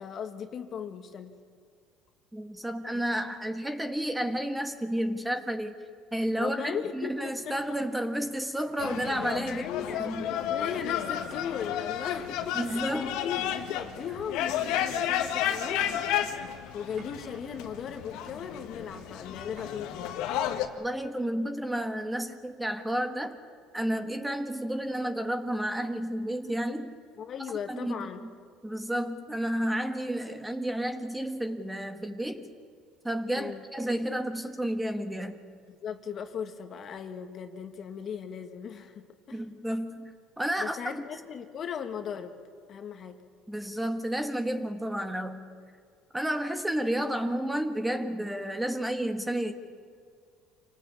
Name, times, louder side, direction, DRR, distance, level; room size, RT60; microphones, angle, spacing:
voice 1, 0.0-1.3 2.9-3.0 6.4-7.6 9.5-10.1 10.5-16.3 16.7-20.1 27.2-28.2 33.3-33.6 35.7-39.4 40.6-42.4 42.7-43.2, left 7 dB, 45° left, 7 dB, 1.8 m, -38 dB
voice 2, 2.3-5.8 6.1-9.6 10.0-10.2 12.5-13.2 20.8-23.4 23.7-27.0 27.7-27.9 28.2-28.3 28.6-32.5 33.0-35.4 39.3-41.0 43.5-45.5 46.1-49.5, right 1 dB, 5° right, 7 dB, 1.5 m, -31 dB
Rain, 7.1-20.4, right 4 dB, 45° right, 4.0 m, -53 dB
sound 1, 8.8-20.7, left 10 dB, 75° left, 1.8 m, -32 dB
26.5 x 18.5 x 8.6 m, 2.2 s
cardioid pair, 120°, 0 cm